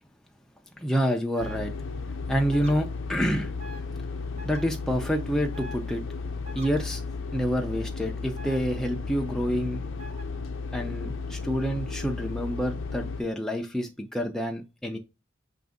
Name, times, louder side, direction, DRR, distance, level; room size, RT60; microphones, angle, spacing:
voice 1, 0.8-1.7 2.3-3.5 4.4-6.0 6.5-7.0 7.3-9.8 10.7-15.0, equal, 5° left, 0.4 m, -28 dB
sound 1, 1.3-1.6 2.5-2.7 3.6-3.8 4.4-4.6 5.5-5.8 6.4-6.7 8.4-8.6 10.0-10.2, left 1 dB, 30° right, 0.7 m, -43 dB
sound 2, 1.4-13.2, left 4 dB, 90° left, 0.6 m, -34 dB
5.9 x 2.6 x 3.4 m
head